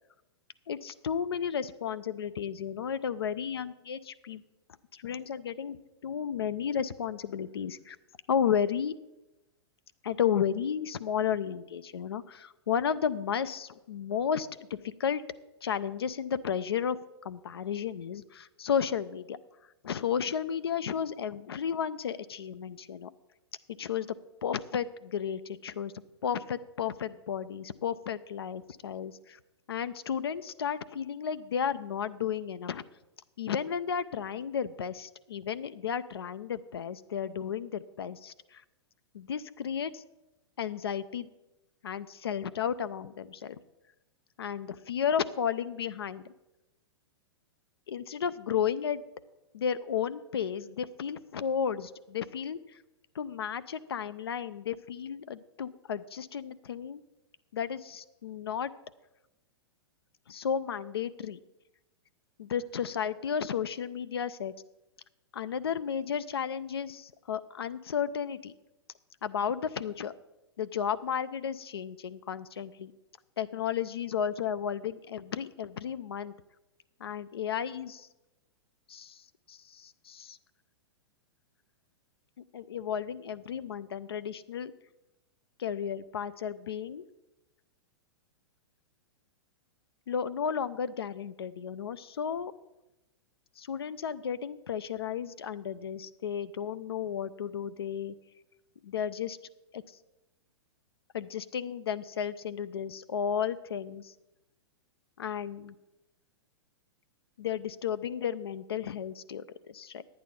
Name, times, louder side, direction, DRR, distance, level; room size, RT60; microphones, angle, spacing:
voice 1, 0.7-4.4 4.9-5.8 6.0-8.0 8.3-8.9 10.0-15.2 15.6-19.4 19.8-23.1 23.8-24.1 24.4-25.9 26.2-29.4 29.7-32.8 33.4-38.6 39.1-40.0 40.6-41.3 41.8-43.6 44.4-46.2 47.9-49.0 49.5-52.6 53.1-57.0 57.5-58.7 60.3-61.4 62.4-64.5 65.3-68.5 69.2-70.1 70.6-72.9 73.4-76.3 77.0-78.1 78.9-80.4 82.5-84.7 85.6-87.0 90.1-92.5 93.6-98.1 98.8-99.4 99.7-99.8 101.1-104.1 105.2-105.7 107.4-110.0, left 8 dB, 65° left, 13 dB, 0.5 m, -33 dB
11.0 x 8.9 x 5.1 m, 0.98 s
figure-of-eight pair, 105°, 14 cm